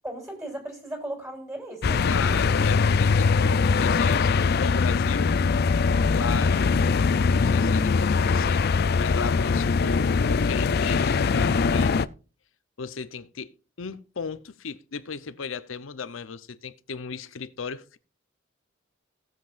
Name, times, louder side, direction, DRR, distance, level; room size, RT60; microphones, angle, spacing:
voice 1, 0.0-2.1, right 1 dB, 15° right, 3.5 m, -36 dB
sound 1, 1.8-12.0, left 5 dB, 55° left, 0.4 m, -22 dB
voice 2, 2.1-5.4 6.1-6.6 7.2-8.6 9.0-12.0 12.8-18.0, left 5 dB, 85° left, 0.8 m, -36 dB
17.5 x 7.6 x 2.5 m
head